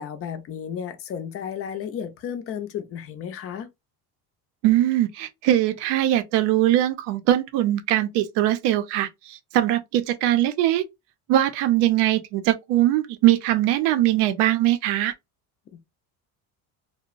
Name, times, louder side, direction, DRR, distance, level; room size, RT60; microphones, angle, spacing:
voice 1, 0.0-3.7, left 8 dB, 35° left, 0.4 m, -33 dB
voice 2, 4.6-10.8 11.3-15.1, right 13 dB, 80° right, 0.5 m, -21 dB
2.8 x 2.1 x 2.4 m
cardioid pair, 145°, 41 cm